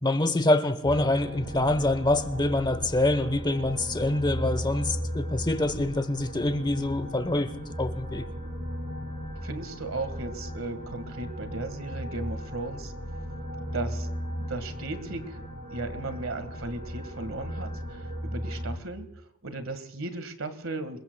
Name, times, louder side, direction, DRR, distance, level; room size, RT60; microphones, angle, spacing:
voice 1, 0.0-7.5 7.8-8.3, left 2 dB, 20° left, 1.0 m, -25 dB
sound 1, 0.8-18.8, equal, 45° right, 6.5 m, -36 dB
voice 2, 9.4-12.9 13.7-14.1 14.4-15.4 15.7-19.1 19.4-21.0, right 2 dB, 85° right, 1.7 m, -36 dB
27.0 x 22.0 x 2.3 m
head